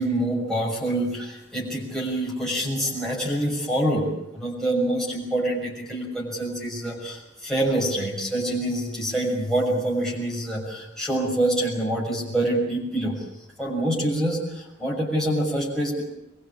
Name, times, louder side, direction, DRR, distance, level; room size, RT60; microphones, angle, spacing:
voice 1, 0.0-13.2 13.6-16.0, right 1 dB, 5° left, -5 dB, 6.2 m, -26 dB
23.5 x 23.0 x 8.7 m, 0.83 s
head